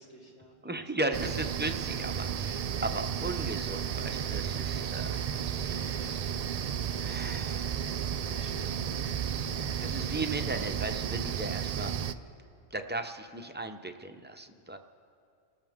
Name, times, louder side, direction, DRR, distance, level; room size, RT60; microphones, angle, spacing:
voice 1, 0.0-0.8 1.1-1.2 2.7-3.0 5.9-6.3 8.2-9.6 9.9-10.0, left 1 dB, 70° left, -5 dB, 3.3 m, -53 dB
voice 2, 0.6-6.4 7.0-7.7 9.4-9.5 9.8-11.9 12.7-14.8, right 2 dB, 15° right, 6 dB, 0.4 m, -37 dB
sound 1, 1.1-12.1, right 8 dB, 90° right, 0.3 m, -33 dB
28.5 x 14.0 x 3.6 m, 2.5 s
omnidirectional pair, 1.2 m